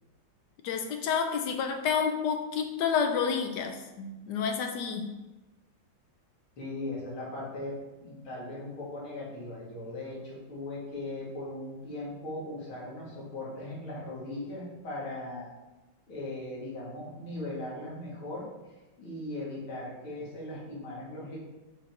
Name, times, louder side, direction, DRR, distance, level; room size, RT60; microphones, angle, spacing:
voice 1, 0.6-5.1, left 6 dB, 70° left, 5 dB, 1.1 m, -29 dB
voice 2, 6.6-15.5 16.1-18.5 19.0-21.4, left 2 dB, 85° left, -6 dB, 2.8 m, -38 dB
6.4 x 4.4 x 3.8 m, 1.1 s
omnidirectional pair, 2.2 m